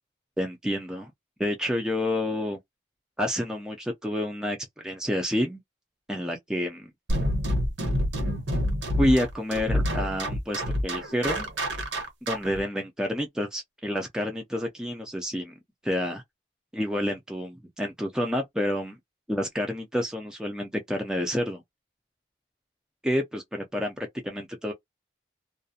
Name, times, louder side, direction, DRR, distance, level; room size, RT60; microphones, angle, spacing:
voice 1, 0.4-1.1 1.4-2.6 3.2-5.6 6.1-6.9 9.0-11.5 12.2-15.5 15.8-16.2 16.7-19.0 19.3-21.6 23.0-24.7, left 1 dB, 5° right, 0.3 m, -29 dB
sound 1, 7.1-12.6, equal, 90° right, 1.0 m, -27 dB
2.3 x 2.1 x 2.6 m
head